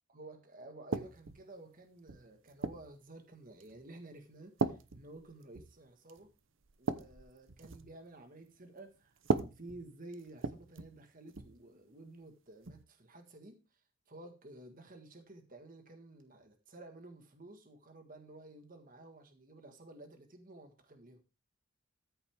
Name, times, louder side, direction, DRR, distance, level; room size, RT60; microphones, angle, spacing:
voice 1, 0.1-6.3 6.8-9.2 9.4-13.8 14.1-21.2, right 2 dB, 40° right, 6 dB, 1.6 m, -53 dB
sound 1, 0.9-1.4 2.1-2.9 3.6-3.9 4.6-5.8 6.1-6.3 6.6-7.9 9.2-11.0 11.3-11.6 12.6-12.8, right 3 dB, 65° right, 0.8 m, -37 dB
13.5 x 7.0 x 3.5 m, 0.29 s
head